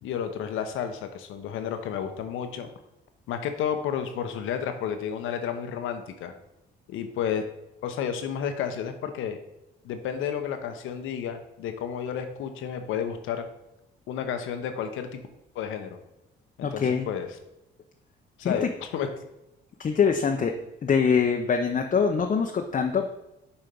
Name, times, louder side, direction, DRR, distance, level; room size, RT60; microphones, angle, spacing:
voice 1, 0.0-2.7 3.3-6.3 6.9-7.4 7.8-9.4 9.8-13.4 14.1-15.2 15.5-16.0 16.6-17.3 18.4-19.1, left 8 dB, 90° left, 7 dB, 1.0 m, -31 dB
voice 2, 16.6-17.1 18.4-18.7 19.8-20.5 20.8-23.2, left 6 dB, 40° left, 3 dB, 0.7 m, -24 dB
7.1 x 4.5 x 5.2 m, 0.90 s
cardioid pair, 90°, 20 cm